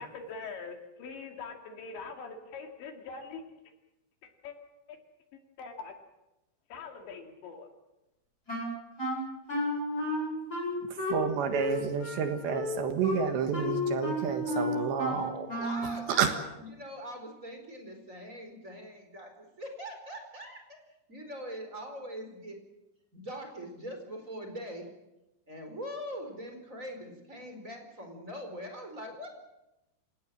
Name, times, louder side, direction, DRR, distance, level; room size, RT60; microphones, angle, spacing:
voice 1, 0.0-3.4 4.4-4.5 5.6-5.9 6.7-7.7, left 4 dB, 65° left, 4 dB, 4.5 m, -42 dB
Wind instrument woodwind instrument, 8.5-16.0, left 2 dB, 20° left, 8.4 m, -33 dB
voice 2, 11.1-15.5 16.1-16.3, right 7 dB, 70° right, 7 dB, 3.6 m, -30 dB
voice 3, 15.5-20.6 21.1-22.6 23.1-24.9 25.5-29.3, equal, 15° right, 4 dB, 4.2 m, -42 dB
27.5 x 18.0 x 7.5 m, 0.94 s
omnidirectional pair, 5.7 m